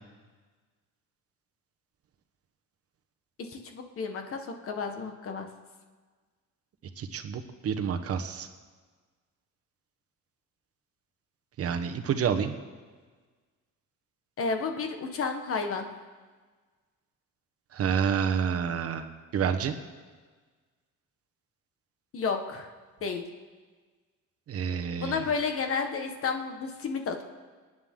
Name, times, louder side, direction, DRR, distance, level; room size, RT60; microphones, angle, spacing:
voice 1, 3.5-5.5 14.4-15.9 22.1-22.7 23.0-23.2 25.0-27.2, left 5 dB, 45° left, 4 dB, 1.6 m, -31 dB
voice 2, 7.0-8.5 11.6-12.5 17.7-19.1 19.3-19.7 24.5-25.2, right 7 dB, 50° right, 6 dB, 1.2 m, -28 dB
27.0 x 9.3 x 3.8 m, 1.4 s
cardioid pair, 140°, 31 cm